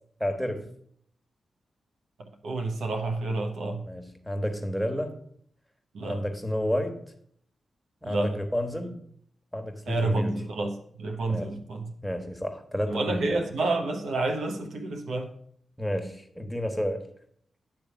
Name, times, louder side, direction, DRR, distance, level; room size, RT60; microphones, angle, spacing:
voice 1, 0.2-0.7 3.8-5.2 6.0-7.0 8.0-9.0 9.5-10.4 11.3-11.5 12.0-13.4 15.8-17.1, equal, 5° left, 1.4 m, -30 dB
voice 2, 2.2-3.9 5.9-6.2 8.0-8.3 9.9-11.9 12.9-15.3, right 2 dB, 85° right, 1.1 m, -29 dB
10.5 x 3.5 x 7.0 m
cardioid pair, 55°, 0 cm